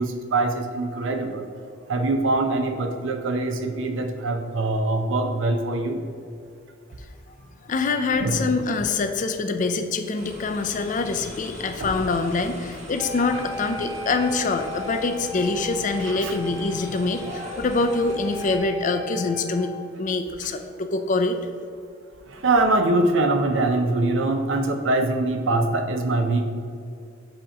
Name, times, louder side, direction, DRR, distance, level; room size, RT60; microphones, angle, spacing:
voice 1, 0.0-1.5 1.9-6.0 8.2-8.4 11.8-11.9 16.0-16.3 22.3-26.4, right 2 dB, 70° right, 5 dB, 0.6 m, -23 dB
voice 2, 7.7-21.4, left 3 dB, 40° left, 7 dB, 0.4 m, -25 dB
sound 1, 10.2-18.6, equal, 35° right, 1.0 m, -41 dB
Wind instrument woodwind instrument, 13.0-19.9, left 1 dB, 10° right, 0.9 m, -37 dB
7.6 x 2.9 x 4.9 m, 2.4 s
head